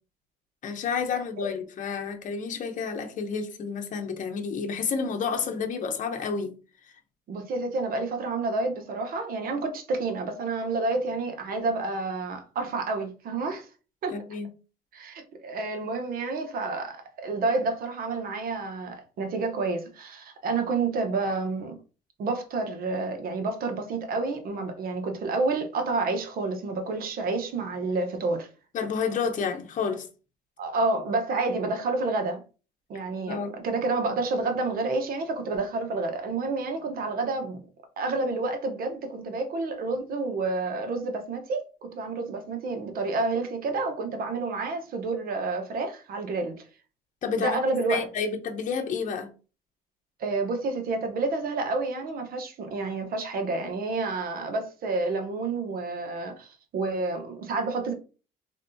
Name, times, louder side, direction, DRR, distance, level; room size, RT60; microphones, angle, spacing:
voice 1, 0.6-6.5 14.1-14.5 28.7-30.1 33.3-33.5 47.2-47.6 47.9-49.3, left 5 dB, 50° left, 0.8 m, -30 dB
voice 2, 7.3-13.7 14.0-14.2 14.9-21.7 22.2-28.5 30.6-32.4 32.9-37.6 38.0-46.6 47.4-48.1 50.2-57.9, right 3 dB, 60° right, 1.0 m, -29 dB
3.5 x 3.2 x 2.7 m
cardioid pair, 110°, 17 cm